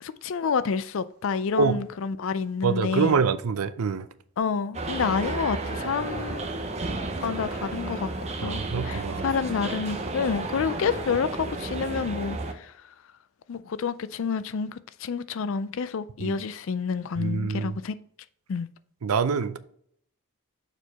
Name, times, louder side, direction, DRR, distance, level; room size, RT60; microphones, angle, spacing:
voice 1, 0.0-3.2 4.4-6.6 7.2-8.1 8.4-12.7 13.5-18.0 18.5-18.7, left 5 dB, 60° left, 0.4 m, -29 dB
voice 2, 2.6-4.1 8.4-9.3 16.2-16.4 17.2-17.8 19.0-19.6, right 5 dB, 80° right, 0.5 m, -25 dB
sound 1, 4.7-12.5, right 2 dB, 30° right, 0.7 m, -32 dB
6.8 x 4.5 x 4.1 m
head